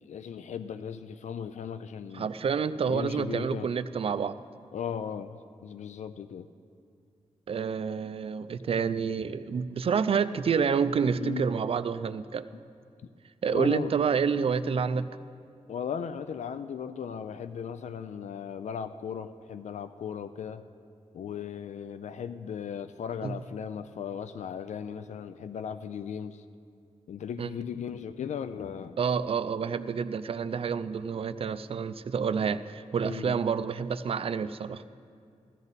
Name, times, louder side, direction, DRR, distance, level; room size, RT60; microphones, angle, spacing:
voice 1, 0.1-2.3 2.9-3.7 4.7-6.5 11.2-11.5 13.5-13.9 15.7-20.6 21.1-26.4 27.1-28.9 33.0-33.4, left 7 dB, 80° left, 11 dB, 0.4 m, -37 dB
voice 2, 2.1-4.4 7.5-12.4 13.4-15.1 23.2-23.4 27.4-27.5 29.0-34.8, right 6 dB, 55° right, 12 dB, 0.4 m, -28 dB
14.5 x 14.5 x 4.1 m, 2.3 s
wide cardioid pair, 155°, 12 cm